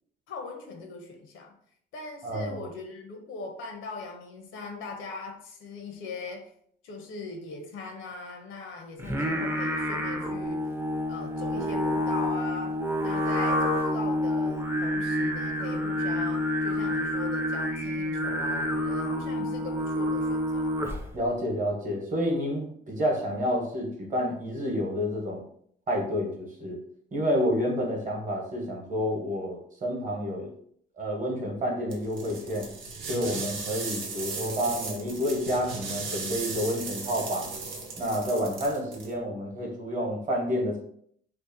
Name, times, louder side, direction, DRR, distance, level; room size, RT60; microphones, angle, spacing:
voice 1, 0.3-1.5 1.9-6.5 6.8-10.7 11.1-20.8, left 3 dB, 80° left, 3 dB, 0.6 m, -40 dB
voice 2, 2.2-2.6 21.1-25.4 25.9-26.8 27.1-30.5 31.0-32.7 33.1-37.5 38.0-40.8, equal, 40° right, 0 dB, 0.9 m, -29 dB
Singing, 9.0-21.2, left 1 dB, 10° right, 0.4 m, -28 dB
sound 1, 31.9-39.1, right 4 dB, 80° right, 0.7 m, -36 dB
2.7 x 2.1 x 2.6 m, 0.65 s
cardioid pair, 90°, 20 cm